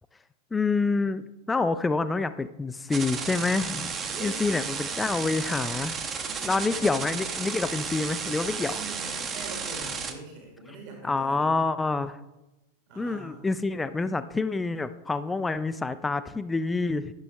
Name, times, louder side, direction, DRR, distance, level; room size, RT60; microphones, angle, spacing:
voice 1, 0.5-4.0 4.2-5.9 6.4-8.8 11.0-12.2 13.0-17.1, left 3 dB, 10° left, 12 dB, 0.3 m, -27 dB
sound 1, 2.9-10.1, right 5 dB, 25° right, 0.7 m, -33 dB
voice 2, 4.0-4.7 6.2-7.1 8.5-11.5 12.9-13.5, right 2 dB, 45° right, 1 dB, 1.7 m, -43 dB
10.5 x 6.2 x 3.1 m, 0.98 s
figure-of-eight pair, 90°, 0 cm